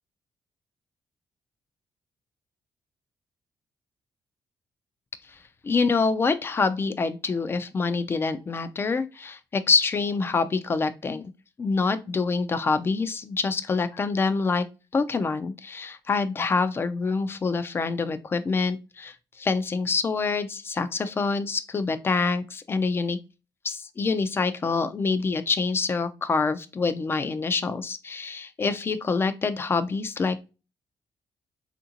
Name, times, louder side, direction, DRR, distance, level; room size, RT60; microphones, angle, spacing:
voice 1, 5.6-11.3 11.6-14.7 14.9-23.2 23.6-30.5, left 4 dB, 30° left, 0.4 m, -26 dB
3.6 x 2.5 x 2.8 m
cardioid pair, 130°, 8 cm